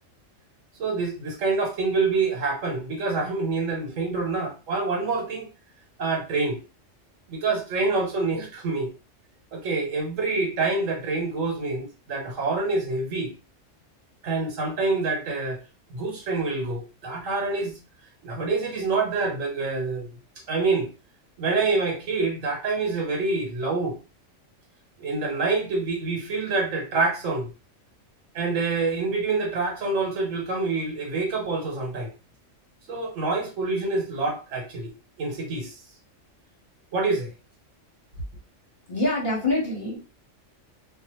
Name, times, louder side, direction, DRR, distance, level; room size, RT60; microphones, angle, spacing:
voice 1, 0.8-5.5 6.0-6.6 7.3-8.9 9.5-13.3 14.2-15.6 15.9-17.7 18.2-20.1 20.5-20.9 21.4-24.0 25.0-27.5 28.3-32.1 32.9-34.9 35.2-35.7 36.9-37.3, right 3 dB, 80° right, 1.2 m, -26 dB
voice 2, 38.9-40.0, left 2 dB, 40° left, 1.1 m, -25 dB
2.5 x 2.0 x 2.9 m
omnidirectional pair, 1.3 m